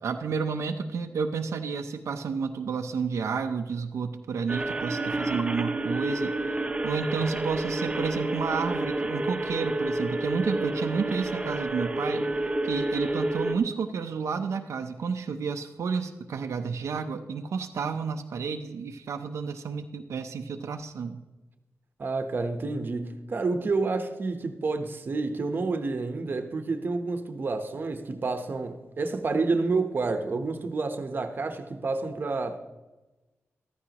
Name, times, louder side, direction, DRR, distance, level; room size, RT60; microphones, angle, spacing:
voice 1, 0.0-6.3 6.8-12.3 12.6-21.2, right 5 dB, 90° right, 0.7 m, -31 dB
sound 1, 4.5-13.6, right 2 dB, 25° right, 1.0 m, -29 dB
voice 2, 22.0-32.6, right 3 dB, 45° right, 1.0 m, -29 dB
14.5 x 13.0 x 3.0 m
wide cardioid pair, 130°, 5 cm